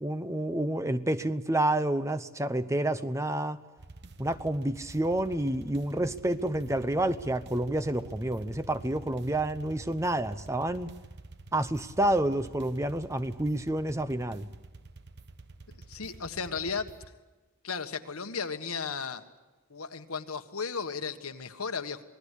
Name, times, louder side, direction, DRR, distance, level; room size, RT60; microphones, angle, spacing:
voice 1, 0.0-3.6 4.2-10.9 11.5-14.5, right 1 dB, 15° right, 0.8 m, -29 dB
sound 1, 3.8-17.1, right 2 dB, 50° right, 1.1 m, -48 dB
voice 2, 15.7-16.9 17.6-19.2 19.7-22.0, left 5 dB, 90° left, 1.6 m, -35 dB
27.5 x 20.0 x 8.4 m
head